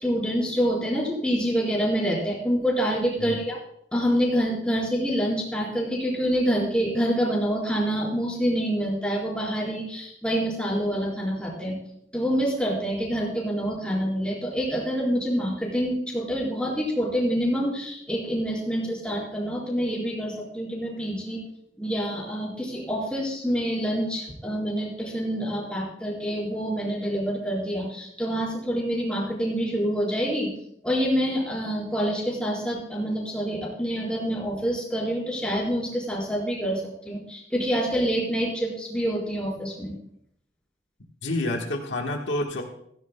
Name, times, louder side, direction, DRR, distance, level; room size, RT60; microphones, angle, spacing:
voice 1, 0.0-3.6 3.9-11.8 12.1-21.4 21.8-30.5 30.8-39.9, equal, 5° left, -3 dB, 4.2 m, -26 dB
voice 2, 41.2-42.6, left 1 dB, 80° left, 1 dB, 1.4 m, -28 dB
16.0 x 15.5 x 2.2 m, 0.71 s
head